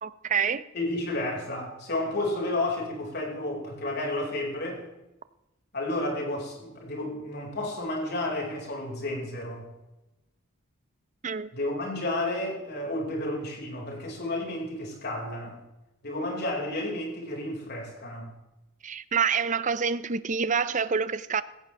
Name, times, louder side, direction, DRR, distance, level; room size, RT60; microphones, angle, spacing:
voice 1, 0.0-0.6 11.2-11.5 18.8-21.4, right 6 dB, 35° right, 0.6 m, -27 dB
voice 2, 0.7-4.8 5.7-9.6 11.5-15.6 16.0-18.3, left 1 dB, 50° left, 5.1 m, -31 dB
17.5 x 15.0 x 3.4 m
head